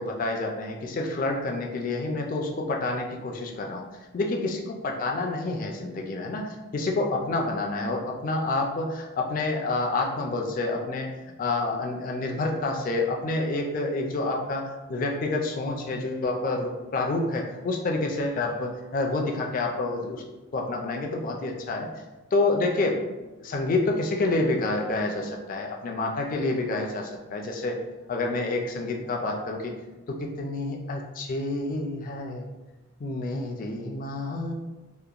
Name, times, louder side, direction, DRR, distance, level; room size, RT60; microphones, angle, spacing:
voice 1, 0.0-3.8 4.1-11.1 11.4-20.2 20.5-21.9 22.3-27.8 28.1-29.7 30.1-32.5 33.0-34.5, left 2 dB, 40° left, 1 dB, 0.3 m, -28 dB
2.8 x 2.1 x 2.4 m, 1.1 s
head